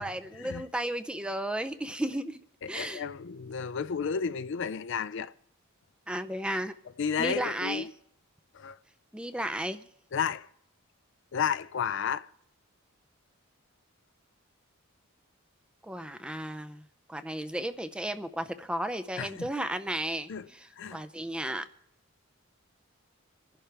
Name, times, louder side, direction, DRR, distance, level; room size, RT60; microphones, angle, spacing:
voice 1, 0.0-2.4 2.7-3.0 6.1-6.8 7.2-7.9 9.1-9.9 15.8-16.8 17.1-21.7, right 1 dB, 5° right, 0.5 m, -34 dB
voice 2, 2.6-5.3 6.1-6.2 7.0-7.9 8.5-8.8 10.1-10.5 11.3-12.3 19.2-19.5 20.3-20.4 20.8-21.0, left 7 dB, 55° left, 0.4 m, -32 dB
27.0 x 11.5 x 3.4 m
head